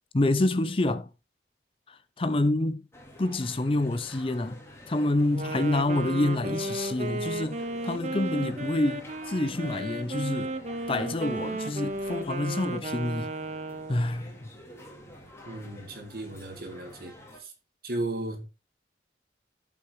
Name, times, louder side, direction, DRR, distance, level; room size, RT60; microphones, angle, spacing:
voice 1, 0.1-1.1 1.9-2.8 3.2-4.6 4.9-10.5 10.9-13.3 13.9-14.3, left 2 dB, 30° left, 0.5 m, -27 dB
sound 1, 2.9-17.4, left 1 dB, 15° left, 2.2 m, -49 dB
Wind instrument woodwind instrument, 5.2-14.2, right 2 dB, 40° right, 0.7 m, -34 dB
voice 2, 15.5-17.1 17.4-17.5 17.8-18.5, right 2 dB, 55° right, 2.0 m, -35 dB
14.0 x 5.9 x 3.2 m
head